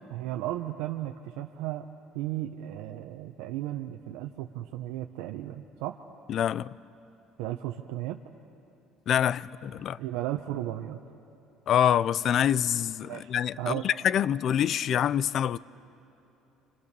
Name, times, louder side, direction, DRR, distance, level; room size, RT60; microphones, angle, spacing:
voice 1, 0.1-1.9 2.1-6.0 7.4-8.2 10.0-11.0 13.1-13.3 13.6-13.9, right 14 dB, 85° right, 0.9 m, -34 dB
voice 2, 6.3-6.8 9.1-10.0 11.7-15.6, left 9 dB, 55° left, 0.5 m, -26 dB
29.0 x 26.0 x 6.8 m
supercardioid pair, 90°, 0 cm